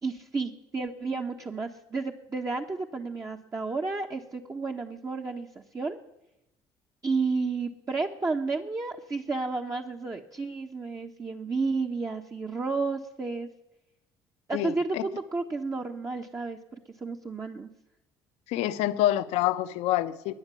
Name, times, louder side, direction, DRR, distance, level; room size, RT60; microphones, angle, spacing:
voice 1, 0.0-5.5 5.7-6.0 7.0-13.5 14.5-17.7, right 4 dB, 30° right, 1 dB, 1.3 m, -32 dB
voice 2, 14.5-15.0 18.5-20.3, left 13 dB, 75° left, 12 dB, 0.9 m, -27 dB
21.0 x 9.7 x 7.0 m, 0.92 s
supercardioid pair, 70°, 11 cm